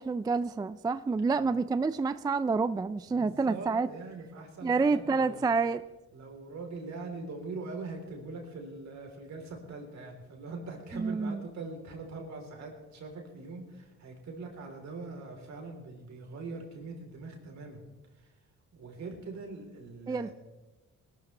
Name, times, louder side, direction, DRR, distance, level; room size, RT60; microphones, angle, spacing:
voice 1, 0.0-3.9 4.6-5.8 10.9-11.4 20.1-20.3, right 4 dB, 15° right, 14 dB, 0.3 m, -28 dB
voice 2, 3.1-5.4 6.1-18.4 18.7-20.3, right 3 dB, 65° right, 2 dB, 3.5 m, -42 dB
20.5 x 13.0 x 3.3 m, 1.1 s
cardioid pair, 90°, 30 cm